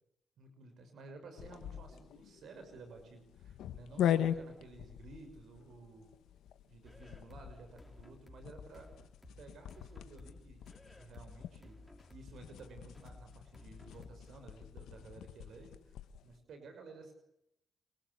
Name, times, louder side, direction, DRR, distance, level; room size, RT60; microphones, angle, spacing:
voice 1, 0.4-6.1 6.7-8.9 9.4-10.7 11.0-11.8 12.1-16.0 16.2-17.1, right 3 dB, 75° right, 7 dB, 6.0 m, -54 dB
sound 1, 1.4-16.3, left 10 dB, 85° left, 1.6 m, -41 dB
sound 2, 6.8-14.4, left 1 dB, 5° left, 4.8 m, -57 dB
29.5 x 23.0 x 8.4 m, 0.81 s
supercardioid pair, 60°, 0 cm